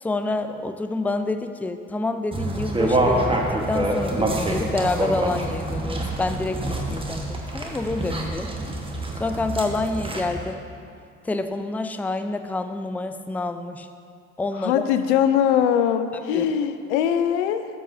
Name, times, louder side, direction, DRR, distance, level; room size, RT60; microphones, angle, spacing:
voice 1, 0.0-8.5 9.2-10.6 11.2-13.9 14.4-14.8 16.1-16.5, left 2 dB, 5° left, 9 dB, 0.4 m, -28 dB
sound 1, 2.3-10.4, right 1 dB, 15° right, 1.3 m, -26 dB
voice 2, 14.6-17.7, left 9 dB, 80° left, 10 dB, 0.5 m, -21 dB
13.0 x 7.4 x 2.7 m, 2.4 s
hypercardioid pair, 65°, 34 cm